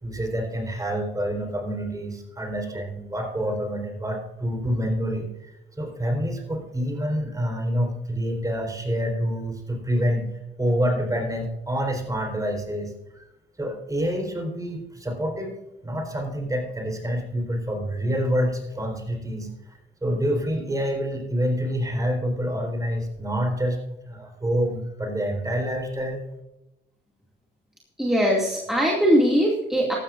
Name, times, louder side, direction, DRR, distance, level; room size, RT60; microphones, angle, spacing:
voice 1, 0.0-10.3 10.6-13.2 13.6-15.5 15.8-23.8 24.1-26.2, equal, 15° right, 3 dB, 4.1 m, -27 dB
voice 2, 28.0-30.0, equal, ahead, -3 dB, 2.4 m, -20 dB
15.0 x 13.5 x 2.6 m, 0.92 s
cardioid pair, 90°, 20 cm